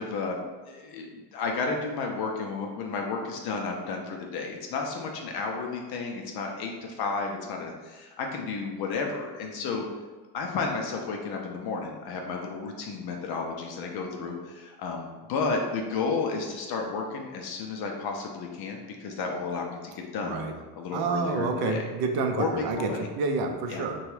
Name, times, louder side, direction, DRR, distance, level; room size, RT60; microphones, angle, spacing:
voice 1, 0.0-9.8 10.3-20.4 20.7-21.9 22.4-23.1 23.7-23.8, left 4 dB, 50° left, 2 dB, 0.5 m, -32 dB
voice 2, 20.2-20.5 20.9-24.0, right 4 dB, 50° right, 5 dB, 0.5 m, -29 dB
2.8 x 2.3 x 3.1 m, 1.3 s
supercardioid pair, 110°, 49 cm